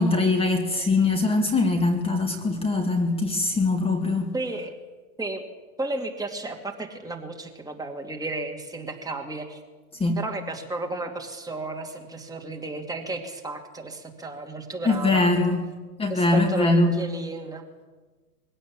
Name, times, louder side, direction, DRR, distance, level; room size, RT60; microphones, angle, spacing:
voice 1, 0.0-4.3 10.0-10.2 14.8-15.7 16.0-17.0, left 2 dB, 10° left, 4 dB, 2.1 m, -22 dB
voice 2, 4.3-4.7 5.2-5.4 5.8-9.6 10.2-15.3 16.1-17.7, right 2 dB, 10° right, 2 dB, 2.4 m, -33 dB
22.5 x 16.5 x 8.8 m, 1.3 s
hypercardioid pair, 125°, 46 cm